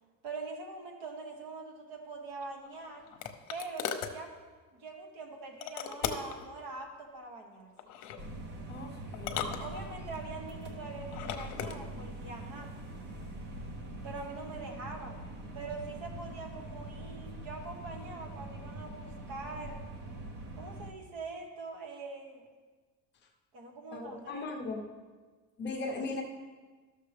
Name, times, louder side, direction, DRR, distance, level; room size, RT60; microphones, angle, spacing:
voice 1, 0.2-3.0 3.5-4.3 4.7-7.7 9.6-12.7 14.0-15.2 15.5-19.8 20.6-22.5 23.5-24.5, right 3 dB, 60° right, 3 dB, 1.4 m, -43 dB
sound 1, 2.4-4.2 5.6-6.4 7.8-8.2 9.1-10.2 11.0-11.8, left 9 dB, 60° left, 0.8 m, -38 dB
sound 2, 8.2-20.9, right 1 dB, 30° right, 0.7 m, -43 dB
voice 2, 8.7-9.6 23.9-24.8 25.6-26.2, left 3 dB, 30° left, 1 dB, 0.7 m, -38 dB
12.5 x 6.5 x 3.3 m, 1.4 s
cardioid pair, 165°, 38 cm